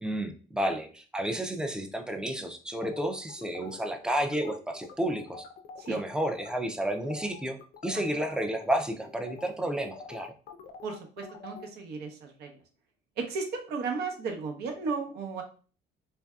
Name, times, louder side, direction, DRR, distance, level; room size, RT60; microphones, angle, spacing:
voice 1, 0.0-5.4 5.9-10.3, right 1 dB, 5° right, 6 dB, 0.4 m, -31 dB
sound 1, 2.8-6.0 6.3-6.6 6.9-11.7, left 5 dB, 60° left, 0.4 m, -46 dB
voice 2, 10.8-12.5 13.3-15.4, right 4 dB, 75° right, 3 dB, 0.8 m, -35 dB
3.2 x 2.6 x 2.3 m, 0.39 s
cardioid pair, 110°, 17 cm